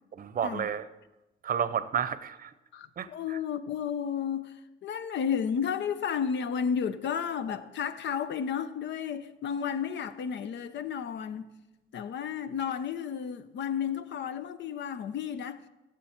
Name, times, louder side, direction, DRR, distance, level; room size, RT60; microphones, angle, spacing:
voice 1, 0.2-0.9 1.4-2.5 3.0-3.4, right 8 dB, 45° right, 0.7 m, -31 dB
voice 2, 2.7-11.5 11.9-15.6, left 7 dB, 65° left, 0.8 m, -32 dB
15.0 x 7.7 x 4.4 m
cardioid pair, 90°, 20 cm